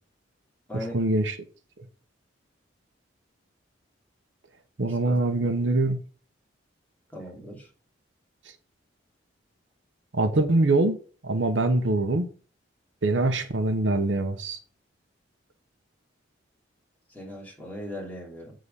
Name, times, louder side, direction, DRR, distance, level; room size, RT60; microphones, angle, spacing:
voice 1, 0.7-1.4 4.8-6.0 10.1-12.3 13.0-14.6, right 2 dB, 75° right, 0.9 m, -24 dB
voice 2, 5.0-5.6 7.1-7.7 17.1-18.5, equal, 10° left, 2.8 m, -39 dB
8.3 x 3.8 x 5.4 m
head